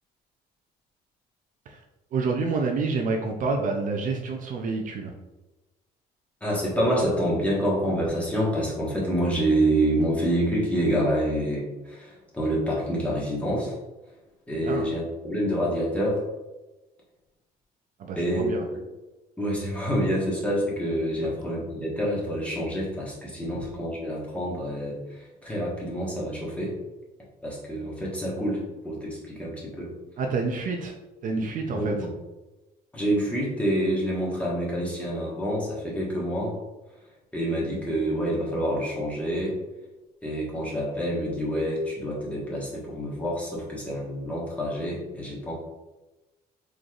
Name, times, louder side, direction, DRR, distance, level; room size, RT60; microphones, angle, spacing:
voice 1, 2.1-5.1 14.6-14.9 18.0-18.7 21.2-21.3 30.2-30.9 31.2-31.9, right 4 dB, 55° right, 2 dB, 0.5 m, -28 dB
voice 2, 6.4-13.8 14.5-16.2 18.2-18.8 19.4-26.8 27.4-29.9 31.4-32.1 32.9-36.6 37.3-39.6 40.2-45.5, equal, 10° left, -5 dB, 1.3 m, -27 dB
3.8 x 3.2 x 2.4 m, 1.1 s
cardioid pair, 110°, 17 cm